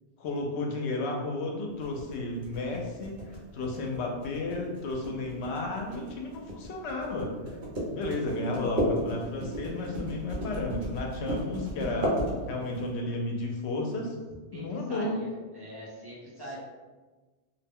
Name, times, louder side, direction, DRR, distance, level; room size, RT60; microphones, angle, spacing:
voice 1, 0.2-7.3 7.9-12.1 12.5-14.1 14.5-15.2, left 2 dB, 75° left, 1 dB, 0.8 m, -33 dB
sound 1, 1.8-12.8, equal, 55° right, 0.8 m, -33 dB
voice 2, 14.5-16.6, right 1 dB, 25° right, -7 dB, 0.7 m, -42 dB
2.4 x 2.1 x 3.5 m, 1.3 s
omnidirectional pair, 1.2 m